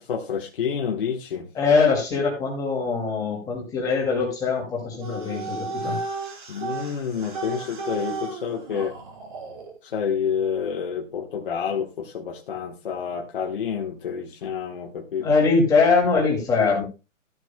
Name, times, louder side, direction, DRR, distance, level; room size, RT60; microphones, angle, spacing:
voice 1, 0.0-1.5 6.5-9.0 9.8-15.3, left 7 dB, 40° left, 0 dB, 1.4 m, -29 dB
voice 2, 1.5-6.0 15.2-16.8, left 4 dB, 10° left, -1 dB, 2.4 m, -22 dB
sound 1, 5.0-9.7, right 3 dB, 35° right, 4.9 m, -34 dB
14.0 x 9.5 x 2.2 m, 0.29 s
hypercardioid pair, 165°, 40 cm